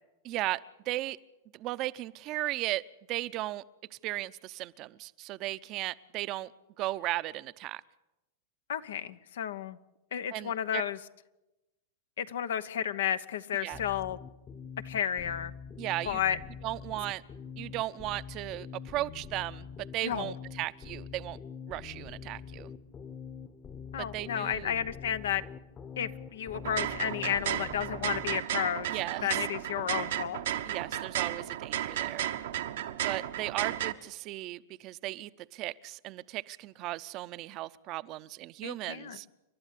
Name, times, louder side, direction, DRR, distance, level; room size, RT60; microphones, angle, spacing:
voice 1, 0.2-1.2 1.5-2.8 3.1-3.6 3.9-6.5 6.8-7.8 10.3-10.8 13.6-13.8 15.8-16.2 16.6-17.2 17.6-19.7 19.9-21.4 21.7-22.7 24.0-24.7 28.9-29.4 30.7-32.3 33.0-39.3, right 17 dB, 45° right, 16 dB, 0.7 m, -36 dB
voice 2, 8.7-9.8 10.1-11.0 12.2-14.2 14.8-15.5 16.0-16.4 20.0-20.3 23.9-25.4 26.0-30.4 38.6-39.2, left 9 dB, 75° left, 13 dB, 1.0 m, -32 dB
sound 1, 13.7-28.4, left 6 dB, 30° left, 1.1 m, -45 dB
sound 2, 26.5-33.9, right 12 dB, 75° right, 1.1 m, -34 dB
29.0 x 12.0 x 8.4 m, 1.0 s
hypercardioid pair, 110°, 0 cm